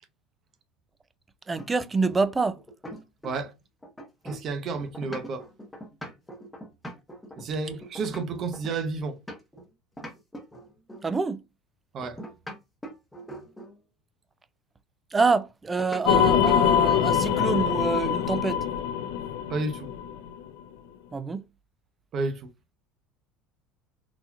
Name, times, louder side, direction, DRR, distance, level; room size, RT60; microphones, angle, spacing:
voice 1, 1.5-2.6 11.0-11.4 15.1-18.6 21.1-21.4, right 4 dB, 15° right, 0.4 m, -26 dB
sound 1, 1.6-3.5 3.8-9.6 10.0-11.1 12.0-13.8 15.8-16.1 16.5-16.6 16.9-17.6, equal, 5° left, 1.0 m, -42 dB
voice 2, 4.2-5.4 7.4-9.2 11.9-12.2 19.5-19.9 22.1-22.5, right 3 dB, 40° right, 0.8 m, -31 dB
sound 2, 16.1-20.5, left 9 dB, 90° left, 0.5 m, -24 dB
3.9 x 2.8 x 2.3 m
cardioid pair, 130°, 0 cm